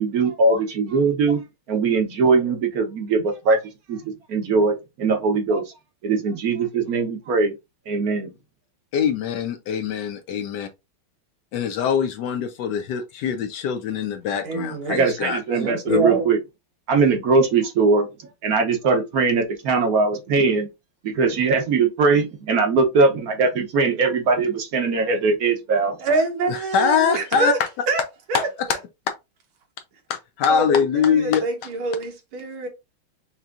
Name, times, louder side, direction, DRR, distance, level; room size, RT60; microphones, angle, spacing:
voice 1, 0.0-1.4 1.7-3.6 3.9-5.6 6.0-7.5 7.9-8.3 14.9-16.4 16.9-18.1 18.4-20.7 21.0-26.0, right 4 dB, 60° right, 1.0 m, -20 dB
voice 2, 8.9-10.7 11.5-15.4 15.9-16.0 26.5-27.5 28.3-28.7 30.4-31.4, left 7 dB, 75° left, 1.0 m, -23 dB
voice 3, 14.4-15.0 15.5-16.3 26.0-27.6 27.9-28.0 28.3-28.5 30.5-32.7, right 3 dB, 80° right, 2.0 m, -25 dB
5.8 x 2.7 x 2.4 m
omnidirectional pair, 2.2 m